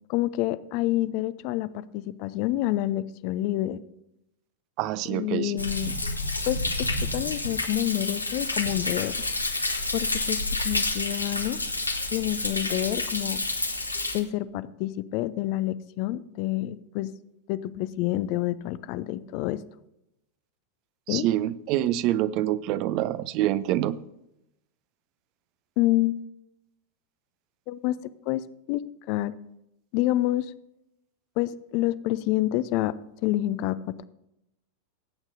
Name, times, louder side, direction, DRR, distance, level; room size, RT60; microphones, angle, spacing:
voice 1, 0.1-3.8 5.1-5.9 6.5-6.9 7.1-9.1 9.9-11.6 12.1-13.4 14.1-17.1 17.5-19.6 21.1-21.3 25.8-26.2 27.7-28.0 28.3-28.4 28.7-28.8 29.1-29.3 29.9-30.5 31.4-32.9 33.2-34.0, left 15 dB, 45° left, 16 dB, 0.5 m, -28 dB
voice 2, 4.8-5.5 21.1-23.9, right 13 dB, 40° right, 16 dB, 0.5 m, -26 dB
Thunder, 5.6-14.2, left 2 dB, 85° left, 1.2 m, -29 dB
18.5 x 8.8 x 2.7 m, 0.84 s
figure-of-eight pair, 90°, 0 cm